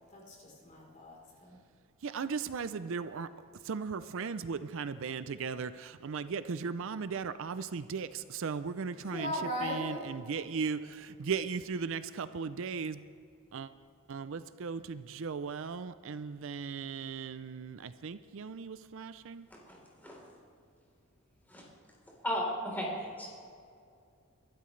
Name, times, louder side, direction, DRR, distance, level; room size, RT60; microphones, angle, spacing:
voice 1, 0.1-1.6 8.9-10.5, left 1 dB, 35° left, -3 dB, 3.7 m, -39 dB
voice 2, 2.0-3.3 3.6-9.3 9.6-13.1 13.5-13.7 14.1-19.5, right 5 dB, 60° right, 13 dB, 0.4 m, -37 dB
voice 3, 22.2-23.3, equal, 10° left, -3 dB, 3.7 m, -35 dB
23.0 x 12.0 x 3.2 m, 2.4 s
head